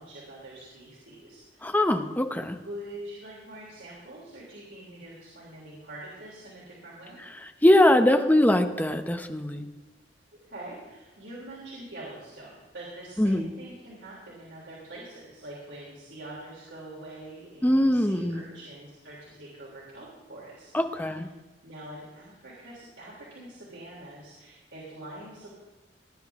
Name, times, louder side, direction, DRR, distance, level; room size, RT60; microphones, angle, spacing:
voice 1, 0.0-2.0 2.6-7.2 10.3-21.2 21.6-25.5, right 1 dB, 90° right, -6 dB, 3.5 m, -44 dB
voice 2, 1.6-2.6 7.6-9.7 13.2-13.5 17.6-18.4 20.7-21.3, left 1 dB, 10° left, 7 dB, 0.8 m, -22 dB
18.5 x 10.5 x 3.6 m, 1.3 s
head